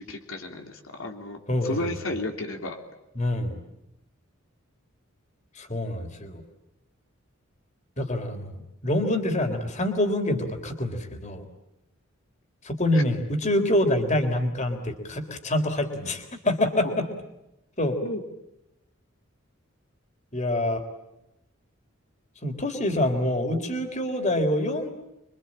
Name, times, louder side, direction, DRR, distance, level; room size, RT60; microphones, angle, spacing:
voice 1, 0.0-2.8 12.9-13.0 16.8-16.9 18.0-18.2, left 2 dB, 90° left, 4 dB, 3.3 m, -33 dB
voice 2, 1.5-1.8 3.2-3.6 5.6-6.4 8.0-11.4 12.6-17.1 17.8-18.0 20.3-20.8 22.4-24.9, left 1 dB, 35° left, 6 dB, 3.8 m, -26 dB
27.0 x 24.5 x 8.8 m, 0.88 s
head